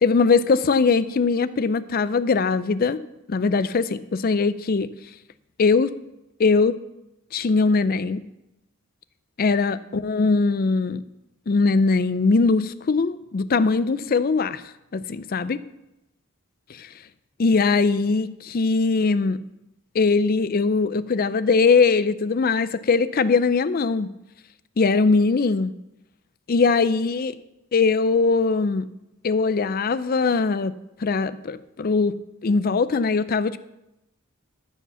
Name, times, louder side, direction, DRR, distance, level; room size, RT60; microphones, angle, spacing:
voice 1, 0.0-3.0 3.3-4.9 5.6-5.9 6.4-6.8 7.3-8.2 9.4-11.0 11.5-14.6 14.9-15.6 16.7-16.9 17.4-19.4 19.9-24.1 24.8-25.7 26.5-27.4 27.7-28.9 29.2-30.7 31.0-32.2 32.4-33.6, left 4 dB, 45° left, 15 dB, 0.4 m, -21 dB
13.5 x 5.0 x 6.9 m, 0.91 s
head